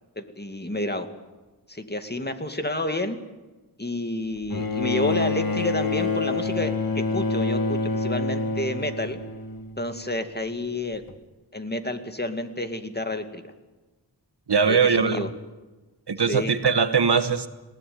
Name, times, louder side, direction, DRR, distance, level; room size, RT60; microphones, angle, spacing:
voice 1, 0.2-1.1 1.7-3.2 3.8-9.2 9.8-11.0 11.5-13.4 14.6-15.3 16.3-16.5, left 1 dB, 25° left, 7 dB, 2.3 m, -30 dB
Bowed string instrument, 4.5-10.0 11.1-11.2, left 3 dB, 50° left, 1.6 m, -27 dB
voice 2, 14.5-15.3 16.1-17.5, right 5 dB, 65° right, 10 dB, 1.4 m, -21 dB
20.0 x 18.5 x 9.4 m, 1.2 s
wide cardioid pair, 50°, 43 cm